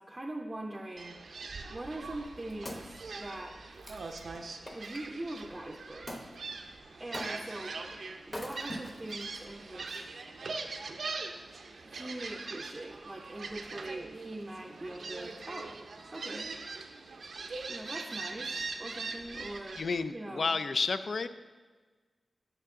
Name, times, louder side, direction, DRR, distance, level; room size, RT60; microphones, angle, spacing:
voice 1, 0.0-3.5 4.7-6.2 7.0-7.8 8.3-10.1 11.8-15.8 16.1-16.5 17.7-19.8 20.1-20.5, right 1 dB, 20° right, 1 dB, 0.5 m, -42 dB
Gull seagull, 1.0-20.0, right 3 dB, 70° right, 0.5 m, -42 dB
Wood, 2.2-5.1 6.1-6.3 7.1-7.7 8.2-9.2 9.9-10.0, equal, 20° left, 0.9 m, -43 dB
voice 2, 19.8-21.3, left 4 dB, 65° left, 12 dB, 0.3 m, -31 dB
8.2 x 5.9 x 3.7 m, 1.4 s
wide cardioid pair, 110°, 0 cm